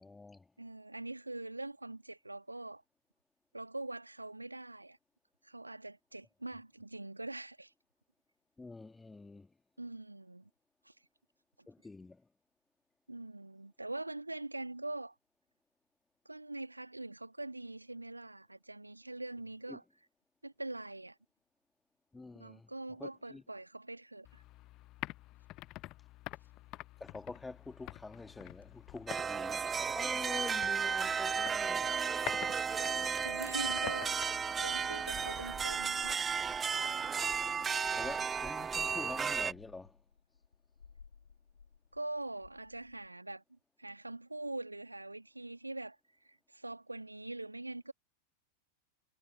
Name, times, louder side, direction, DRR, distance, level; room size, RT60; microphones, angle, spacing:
voice 1, 0.0-0.5 8.6-9.5 11.7-12.2 19.7-19.8 22.1-22.7 23.0-23.4 27.0-32.0 38.0-40.0, left 3 dB, 10° left, 2.6 m, -47 dB
voice 2, 0.6-2.8 3.5-5.0 5.4-7.7 9.8-10.5 10.9-11.0 13.1-15.1 16.3-19.8 20.4-21.2 22.4-24.4 32.5-34.2 34.6-36.4 41.9-46.0 46.2-47.9, right 2 dB, 85° right, 2.1 m, -43 dB
sound 1, 24.2-35.7, left 18 dB, 40° left, 0.7 m, -48 dB
sound 2, 27.8-43.1, left 6 dB, 75° left, 4.4 m, -62 dB
sound 3, 29.1-39.5, right 6 dB, 20° right, 0.3 m, -34 dB
figure-of-eight pair, 90°, 0 cm